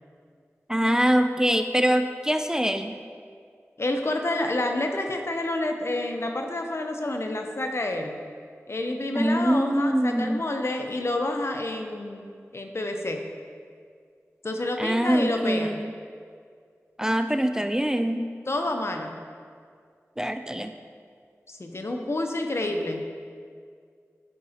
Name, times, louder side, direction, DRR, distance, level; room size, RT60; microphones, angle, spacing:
voice 1, 0.7-3.0 9.1-10.5 14.8-15.9 17.0-18.2 20.2-20.7, equal, 10° right, 7 dB, 0.3 m, -24 dB
voice 2, 3.8-8.2 8.7-12.3 12.5-13.2 14.4-15.8 18.5-19.2 21.5-23.0, left 1 dB, 55° left, 4 dB, 0.7 m, -28 dB
11.0 x 4.8 x 2.8 m, 2.1 s
wide cardioid pair, 40°, 5 cm